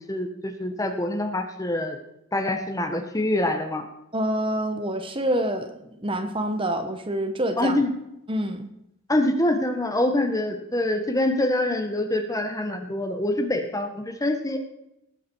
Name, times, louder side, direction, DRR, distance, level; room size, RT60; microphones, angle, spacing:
voice 1, 0.0-2.0 2.3-3.8 7.6-7.9 9.1-14.6, left 1 dB, 15° left, 6 dB, 1.4 m, -25 dB
voice 2, 4.1-7.7 8.3-8.7, right 1 dB, 25° right, 7 dB, 1.2 m, -27 dB
19.0 x 8.5 x 4.7 m, 0.82 s
head